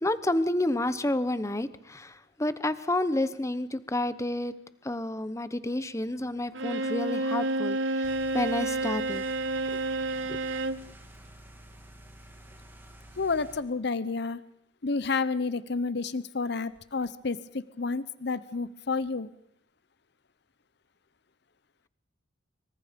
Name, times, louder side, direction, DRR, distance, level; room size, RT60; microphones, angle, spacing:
voice 1, 0.0-4.5 4.8-9.2 9.7-9.8 10.3-10.4, left 1 dB, 15° left, 14 dB, 1.0 m, -30 dB
Bowed string instrument, 6.5-10.9, right 2 dB, 75° right, 1.0 m, -30 dB
sound 1, 8.0-13.6, right 1 dB, 10° right, 2.8 m, -50 dB
voice 2, 13.2-14.4 14.8-19.3, left 4 dB, 60° left, 16 dB, 0.8 m, -30 dB
25.5 x 24.0 x 5.2 m, 0.69 s
head